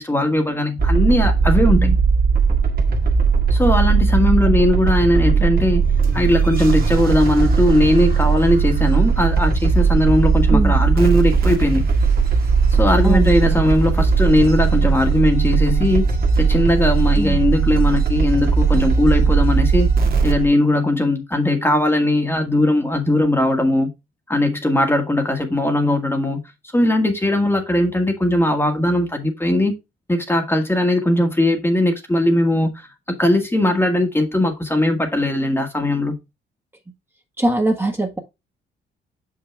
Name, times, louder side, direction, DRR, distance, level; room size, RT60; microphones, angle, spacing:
voice 1, 0.0-1.9 3.5-5.8 6.1-11.9 12.8-16.1 16.4-19.9 20.2-23.9 24.3-26.4 26.7-29.7 30.1-36.2, left 1 dB, 10° left, 1.6 m, -19 dB
sound 1, 0.8-20.5, right 5 dB, 50° right, 1.7 m, -18 dB
voice 2, 13.0-13.6 17.1-17.4 37.4-38.2, right 2 dB, 10° right, 1.5 m, -21 dB
6.6 x 5.9 x 3.4 m
cardioid pair, 90°, 20 cm